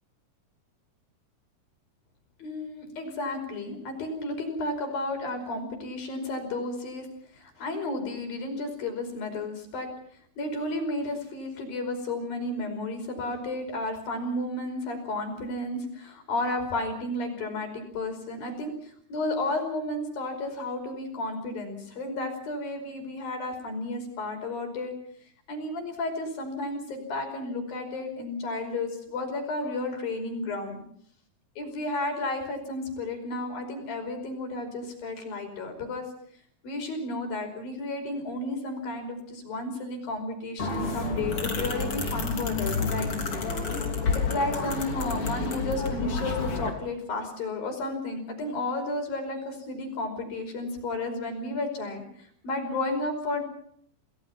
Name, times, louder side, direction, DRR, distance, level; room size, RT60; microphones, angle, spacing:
voice 1, 2.4-7.1 7.3-9.9 10.4-24.9 25.5-30.8 31.6-36.1 36.6-43.1 43.4-43.6 44.1-53.4, left 2 dB, 60° left, 6 dB, 6.7 m, -32 dB
sound 1, 40.6-46.7, left 4 dB, 35° left, 3.6 m, -29 dB
29.0 x 19.0 x 5.9 m, 0.64 s
omnidirectional pair, 4.7 m